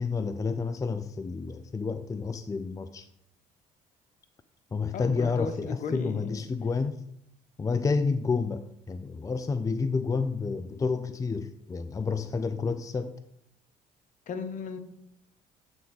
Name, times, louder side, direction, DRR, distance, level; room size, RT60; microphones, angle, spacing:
voice 1, 0.0-3.1 4.7-7.0 7.6-13.1, left 4 dB, 20° left, 10 dB, 0.5 m, -30 dB
voice 2, 4.9-6.3 14.3-14.8, left 5 dB, 60° left, 8 dB, 1.1 m, -35 dB
10.5 x 3.7 x 4.8 m, 0.76 s
supercardioid pair, 75°, 15 cm